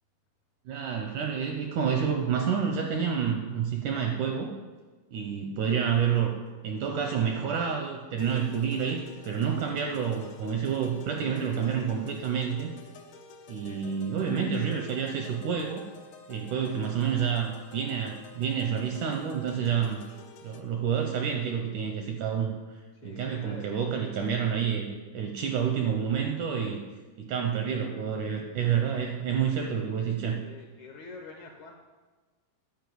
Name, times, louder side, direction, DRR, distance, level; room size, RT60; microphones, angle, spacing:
voice 1, 0.7-4.5 5.1-6.3 6.6-12.7 13.5-15.9 16.3-20.0 20.4-26.8 27.2-30.4, right 7 dB, 80° right, 3 dB, 1.8 m, -29 dB
sound 1, 8.2-20.6, left 4 dB, 90° left, 1.4 m, -50 dB
voice 2, 22.9-23.8 30.4-31.7, left 4 dB, 75° left, 1 dB, 1.8 m, -46 dB
10.5 x 5.2 x 7.7 m, 1.3 s
omnidirectional pair, 4.4 m